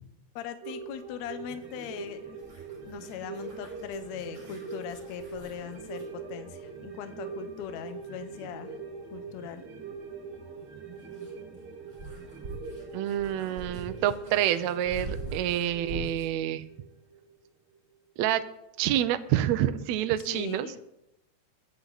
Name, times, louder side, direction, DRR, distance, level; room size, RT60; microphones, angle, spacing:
voice 1, 0.4-2.4 2.8-8.8 9.1-9.6 20.2-20.8, left 10 dB, 75° left, 9 dB, 2.1 m, -40 dB
sound 1, 0.6-17.4 17.7-17.8, right 5 dB, 50° right, 2.1 m, -43 dB
sound 2, 1.6-6.1 8.5-8.6 10.6-16.4, right 2 dB, 25° right, 5.9 m, -44 dB
voice 2, 12.9-16.6 18.2-18.4 18.8-20.7, right 11 dB, 75° right, 11 dB, 1.9 m, -27 dB
22.0 x 9.4 x 4.0 m, 0.89 s
omnidirectional pair, 3.3 m